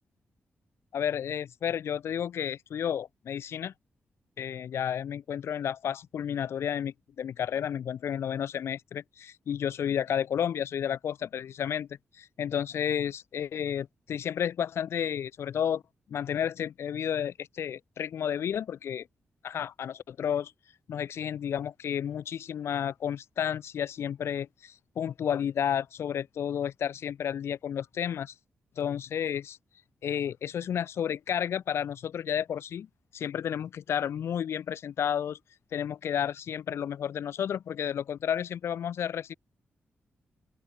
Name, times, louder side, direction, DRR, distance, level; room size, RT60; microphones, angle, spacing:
voice 1, 0.9-3.7 4.4-11.9 12.1-15.8 16.1-19.1 19.4-20.5 20.9-28.3 28.8-29.6 30.0-32.9 33.1-35.4 35.7-39.3, left 9 dB, 85° left, 1.1 m, -31 dB
open air
wide cardioid pair, 145°, 4 cm